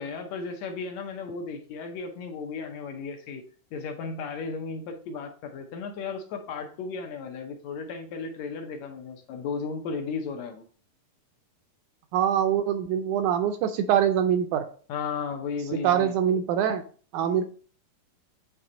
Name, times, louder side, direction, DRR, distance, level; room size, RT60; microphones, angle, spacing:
voice 1, 0.0-3.4 3.7-10.6 14.9-16.1, left 5 dB, 75° left, 4 dB, 1.6 m, -35 dB
voice 2, 12.1-14.6 15.8-16.8 17.1-17.4, right 9 dB, 80° right, 8 dB, 1.8 m, -24 dB
8.6 x 3.2 x 3.8 m, 0.41 s
omnidirectional pair, 3.9 m